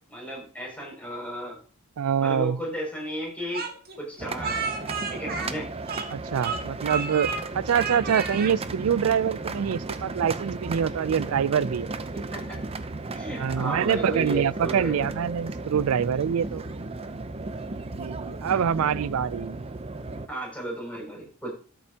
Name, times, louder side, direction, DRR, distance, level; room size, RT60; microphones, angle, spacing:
voice 1, 0.1-1.6 2.2-3.7 4.0-4.7 5.1-5.7 12.1-12.6 13.1-15.1 18.5-18.6 20.3-21.5, right 1 dB, 5° left, 6.1 m, -34 dB
voice 2, 2.0-2.6 6.1-11.9 13.3-16.6 18.0-19.6, right 7 dB, 70° right, 0.4 m, -25 dB
Speech, 3.5-6.2 6.4-7.4 7.7-8.5, right 5 dB, 45° right, 1.8 m, -31 dB
sound 1, 4.2-20.3, right 3 dB, 25° right, 0.6 m, -35 dB
13.0 x 7.7 x 2.8 m
head